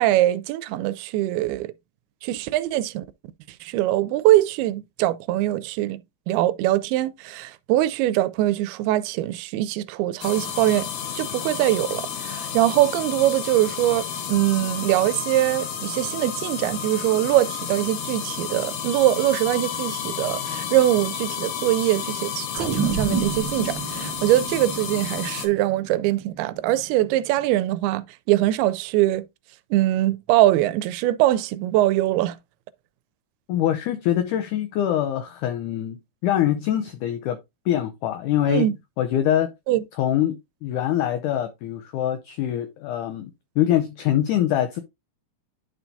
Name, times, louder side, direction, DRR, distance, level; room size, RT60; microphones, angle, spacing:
voice 1, 0.0-1.7 2.2-3.0 3.6-6.0 6.3-10.9 11.2-29.2 29.7-32.4 38.5-38.8 39.7-39.8, right 14 dB, 90° right, 2.5 m, -22 dB
sound 1, 10.2-25.5, left 8 dB, 65° left, 2.4 m, -31 dB
sound 2, 22.5-27.3, right 6 dB, 75° right, 1.0 m, -30 dB
voice 2, 33.5-37.4 37.7-38.7 39.0-39.5 40.0-43.3 43.6-44.8, left 11 dB, 85° left, 1.8 m, -24 dB
11.0 x 4.6 x 2.6 m
omnidirectional pair, 4.4 m